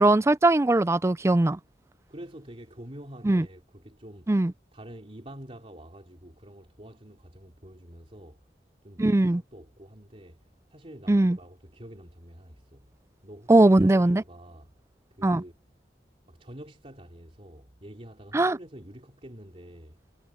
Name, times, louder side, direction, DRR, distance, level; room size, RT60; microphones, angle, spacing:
voice 1, 0.0-1.6 3.2-3.4 4.3-4.5 9.0-9.4 11.1-11.4 13.5-14.2 15.2-15.4 18.3-18.6, right 2 dB, 15° right, 0.4 m, -20 dB
voice 2, 2.1-4.4 4.7-8.4 8.8-12.9 13.2-14.7 15.2-15.5 16.2-20.0, right 1 dB, 35° right, 3.3 m, -47 dB
head